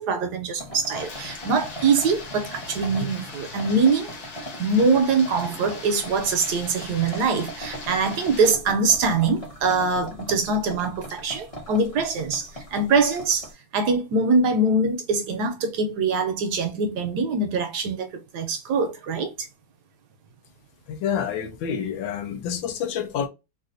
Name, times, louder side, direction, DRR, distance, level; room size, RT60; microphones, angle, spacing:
voice 1, 0.0-4.1 4.6-19.5, right 3 dB, 70° right, 1.0 m, -23 dB
sound 1, 0.6-13.5, equal, 30° left, 0.7 m, -40 dB
sound 2, 0.9-8.5, left 3 dB, 55° left, 1.4 m, -40 dB
voice 2, 20.9-23.3, left 8 dB, 80° left, 1.5 m, -28 dB
4.0 x 2.5 x 2.4 m
omnidirectional pair, 2.1 m